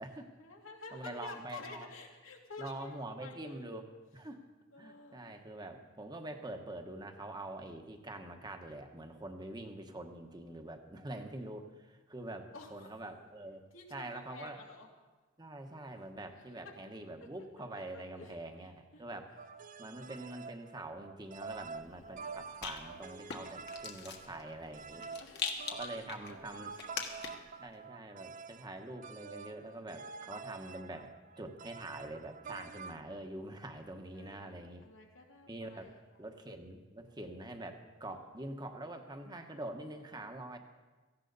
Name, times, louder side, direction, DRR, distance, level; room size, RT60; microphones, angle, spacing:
voice 1, 0.4-3.7 4.7-5.3 12.5-13.0 13.7-14.9 16.6-16.7 17.9-19.0 21.9-22.5 24.8-25.7 26.0-27.1 29.9-30.4 34.1-36.3 38.0-38.5, left 3 dB, 85° left, -1 dB, 2.5 m, -52 dB
voice 2, 0.9-1.9 2.6-3.9 4.1-4.4 4.8-13.6 13.9-14.6 15.4-19.3 19.8-25.0 25.7-26.7 27.6-34.8 35.5-35.9 36.2-40.6, right 1 dB, 20° right, 5 dB, 1.2 m, -45 dB
sound 1, 19.4-33.0, right 5 dB, 40° right, 0.4 m, -48 dB
Rattle, 21.5-27.6, left 6 dB, 60° left, 1.5 m, -44 dB
17.0 x 15.0 x 4.1 m, 1.3 s
head